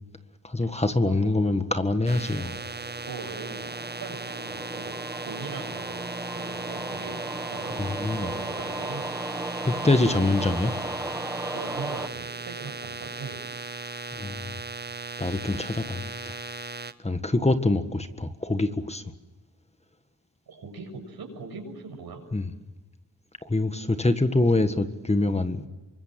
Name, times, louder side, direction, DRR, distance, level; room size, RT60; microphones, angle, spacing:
voice 1, 0.4-2.6 7.8-8.3 9.6-10.7 14.1-14.6 15.2-16.3 17.0-19.0 22.3-22.4 23.4-25.7, left 2 dB, 15° left, 9 dB, 1.7 m, -25 dB
voice 2, 1.0-1.3 3.1-7.9 8.2-9.1 11.5-13.5 17.4-17.5 20.5-22.2, right 4 dB, 80° right, 4 dB, 7.1 m, -40 dB
sound 1, 1.9-12.1, right 1 dB, 10° right, 1.4 m, -36 dB
sound 2, 2.0-16.9, right 3 dB, 25° right, 1.4 m, -37 dB
27.5 x 24.5 x 7.7 m, 1.1 s
cardioid pair, 85°, 37 cm